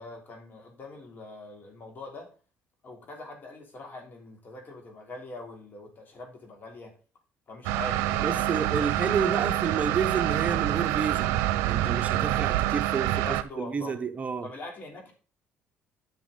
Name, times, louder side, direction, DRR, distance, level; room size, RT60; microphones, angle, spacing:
voice 1, 0.0-2.3 2.8-6.9 7.5-9.8 13.1-14.0 14.4-15.1, left 2 dB, 40° left, 3.2 m, -43 dB
sound 1, 7.6-13.4, right 14 dB, 85° right, 0.6 m, -26 dB
voice 2, 8.2-11.3 11.6-13.1 13.6-14.5, right 6 dB, 30° right, 0.9 m, -30 dB
10.5 x 6.2 x 3.9 m
cardioid pair, 90°, 5 cm